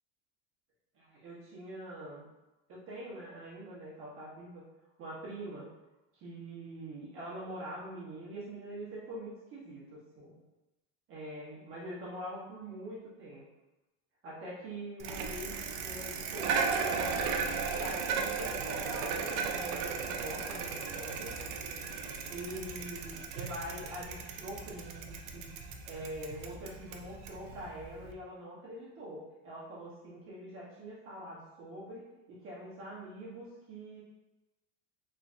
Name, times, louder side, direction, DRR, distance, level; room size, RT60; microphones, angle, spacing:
voice 1, 0.9-2.3 2.7-4.6 5.0-5.7 6.1-10.4 11.1-13.4 14.2-17.3 17.7-21.4 22.3-25.5 25.8-34.0, right 1 dB, 35° right, -7 dB, 1.1 m, -44 dB
Bicycle, 15.0-28.1, right 5 dB, 70° right, 0.6 m, -36 dB
3.6 x 3.3 x 2.6 m, 1.0 s
cardioid pair, 160°, 36 cm